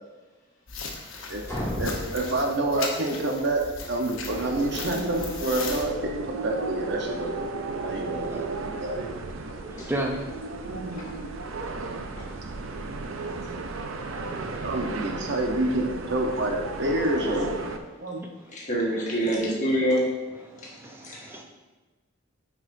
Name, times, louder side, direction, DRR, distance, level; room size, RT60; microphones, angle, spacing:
sound 1, 0.7-5.8, left 4 dB, 75° left, 1.0 m, -37 dB
voice 1, 1.1-1.7 8.2-8.4 9.6-10.2 11.5-11.8 13.4-13.5 13.9-14.7 20.5-21.4, right 1 dB, 10° right, 1 dB, 0.6 m, -36 dB
sound 2, 1.5-3.3, equal, 15° left, 2.2 m, -35 dB
voice 2, 1.8-5.9 6.3-7.3 7.8-9.1 10.7-11.0 14.6-17.7 18.0-18.2, right 1 dB, 55° right, 2 dB, 0.9 m, -28 dB
sound 3, 4.3-17.8, right 3 dB, 75° right, 0.5 m, -34 dB
voice 3, 18.5-20.0 21.0-21.2, equal, 35° left, -4 dB, 1.4 m, -26 dB
9.6 x 4.9 x 2.7 m, 1.3 s
head